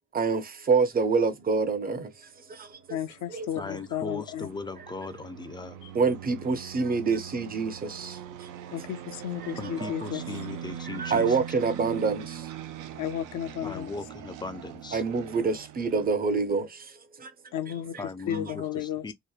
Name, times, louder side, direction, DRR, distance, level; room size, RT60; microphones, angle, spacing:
voice 1, 0.1-2.1 2.5-3.0 3.3-3.5 5.9-8.2 9.4-10.0 10.8-12.5 14.9-16.9 17.2-17.3 17.9-18.0 18.3-18.5, right 4 dB, 30° right, 0.6 m, -27 dB
sound 1, 2.8-16.1, right 10 dB, 85° right, 0.5 m, -42 dB
voice 2, 2.9-4.5 5.8-5.9 8.7-10.2 13.0-13.9 17.5-19.1, left 10 dB, 75° left, 0.6 m, -33 dB
voice 3, 3.6-5.8 9.6-11.4 13.6-15.0 18.0-19.1, left 4 dB, 15° left, 0.3 m, -38 dB
2.8 x 2.1 x 2.3 m
cardioid pair, 90°, 30 cm